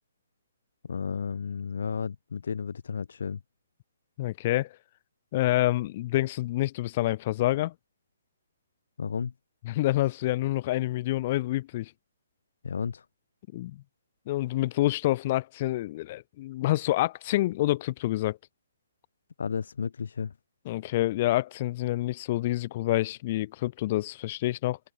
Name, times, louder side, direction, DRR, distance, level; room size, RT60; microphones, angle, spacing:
voice 1, 0.9-3.4 9.0-9.3 12.6-13.0 19.4-20.3, left 6 dB, 70° left, 6.6 m, -32 dB
voice 2, 4.2-4.7 5.3-7.7 9.6-11.9 13.5-13.8 14.3-18.4 20.6-24.8, left 16 dB, 35° left, 1.7 m, -27 dB
hypercardioid pair, 155°, 0 cm